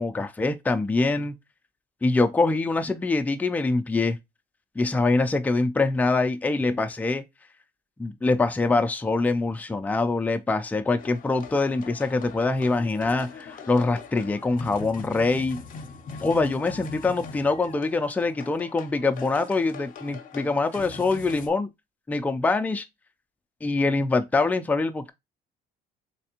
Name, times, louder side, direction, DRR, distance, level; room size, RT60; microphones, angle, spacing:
voice 1, 0.0-1.4 2.0-4.2 4.8-7.2 8.0-15.6 16.2-21.7 22.1-22.9 23.6-25.1, left 3 dB, 10° left, 0.4 m, -24 dB
sound 1, 11.0-21.5, left 5 dB, 50° left, 0.7 m, -42 dB
3.4 x 3.3 x 2.8 m
cardioid pair, 110°, 17 cm